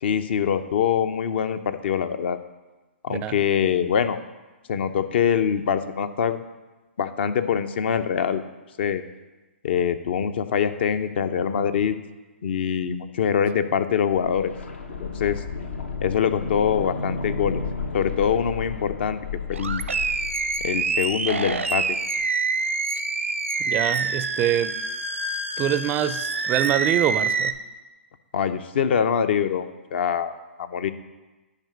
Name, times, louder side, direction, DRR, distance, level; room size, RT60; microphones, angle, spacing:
voice 1, 0.0-2.4 3.0-4.2 4.7-6.5 7.0-8.4 8.8-9.0 9.6-11.9 12.4-14.5 15.0-15.4 16.0-17.6 17.9-19.2 19.5-19.9 20.6-22.0 28.3-30.3 30.6-30.9, left 8 dB, 55° left, 0.7 m, -24 dB
sound 1, 14.1-21.9 22.2-22.3, left 4 dB, 75° left, 1.0 m, -33 dB
Animal, 19.5-27.5, right 4 dB, 90° right, 0.6 m, -26 dB
voice 2, 23.6-24.8 25.6-27.5, right 12 dB, 25° right, 0.4 m, -25 dB
11.0 x 5.1 x 6.6 m
hypercardioid pair, 125°, 7 cm